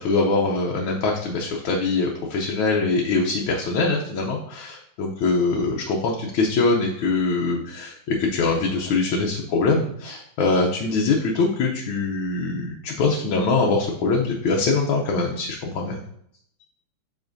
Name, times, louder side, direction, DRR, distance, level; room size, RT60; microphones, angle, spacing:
voice 1, 0.0-16.0, left 3 dB, 85° left, 0 dB, 1.6 m, -23 dB
7.2 x 5.3 x 2.6 m, 0.69 s
omnidirectional pair, 2.2 m